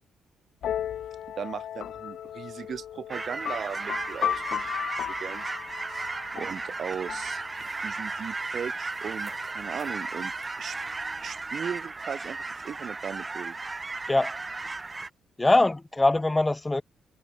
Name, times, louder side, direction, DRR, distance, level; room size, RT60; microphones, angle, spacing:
sound 1, 0.6-8.2, left 10 dB, 70° left, 2.9 m, -35 dB
voice 1, 1.4-4.7 5.0-5.4 5.7-6.0 6.3-10.8 11.2-13.6, right 7 dB, 55° right, 4.3 m, -38 dB
sound 2, 3.1-15.1, right 3 dB, 25° right, 1.0 m, -35 dB
voice 2, 15.4-16.8, left 2 dB, 15° left, 1.4 m, -22 dB
cardioid pair, 90°, 0 cm